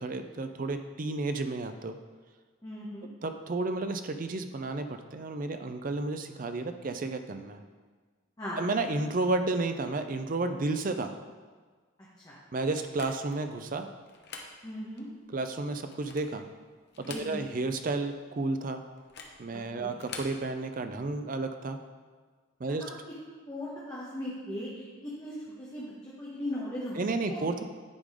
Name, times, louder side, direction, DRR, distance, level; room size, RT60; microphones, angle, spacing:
voice 1, 0.0-2.0 3.2-7.6 8.6-11.1 12.5-13.9 15.3-16.4 17.0-18.8 19.4-21.8 22.6-22.8 27.0-27.6, right 3 dB, 40° right, 8 dB, 0.5 m, -32 dB
voice 2, 2.6-3.1 8.4-8.6 12.2-12.3 14.6-15.1 17.1-17.5 19.7-19.9 22.6-22.9 23.5-27.4, left 1 dB, 20° left, -7 dB, 1.1 m, -38 dB
sound 1, 12.7-13.4 14.1-14.5 15.0-15.1 15.8-16.4 16.9-17.7 17.9-18.0 19.0-19.4 19.9-20.4, left 4 dB, 55° left, 0.8 m, -45 dB
9.8 x 3.8 x 4.9 m, 1.5 s
head